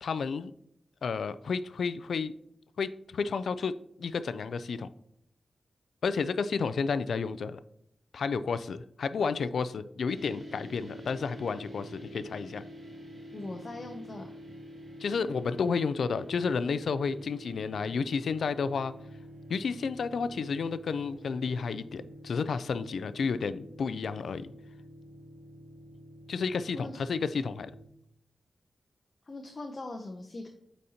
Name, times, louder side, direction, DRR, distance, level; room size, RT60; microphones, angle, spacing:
voice 1, 0.0-0.5 1.0-2.3 2.8-3.7 4.0-4.9 6.0-7.6 8.1-12.6 15.0-18.9 19.5-24.5 26.3-27.7, left 5 dB, 85° left, 14 dB, 0.3 m, -31 dB
sound 1, 10.1-27.9, equal, 60° right, 2.1 m, -47 dB
voice 2, 13.3-14.3 26.7-27.0 29.3-30.5, left 2 dB, 35° left, 3 dB, 0.6 m, -40 dB
8.4 x 4.1 x 2.8 m, 0.74 s
wide cardioid pair, 160°, 0 cm